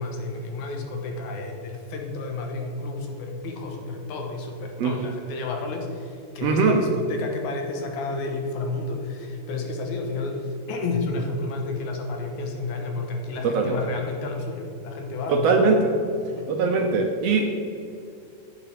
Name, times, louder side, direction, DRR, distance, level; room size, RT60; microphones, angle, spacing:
voice 1, 0.0-15.5 16.3-16.5, left 3 dB, 80° left, 2 dB, 2.5 m, -31 dB
voice 2, 6.4-6.8 13.4-13.8 15.3-15.9 16.5-17.4, right 4 dB, 70° right, 3 dB, 1.6 m, -21 dB
9.1 x 7.3 x 5.1 m, 2.6 s
omnidirectional pair, 3.4 m